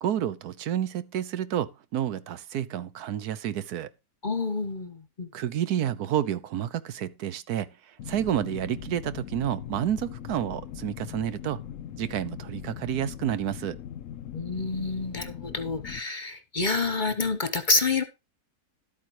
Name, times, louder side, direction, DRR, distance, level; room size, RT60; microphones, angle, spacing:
voice 1, 0.0-3.9 5.3-7.7 8.1-11.6 12.0-13.8, right 10 dB, 90° right, 1.3 m, -30 dB
voice 2, 4.2-5.3 14.3-18.0, left 3 dB, 40° left, 0.9 m, -28 dB
sound 1, 8.0-16.0, left 10 dB, 65° left, 1.0 m, -40 dB
12.0 x 8.8 x 3.0 m
omnidirectional pair, 1.6 m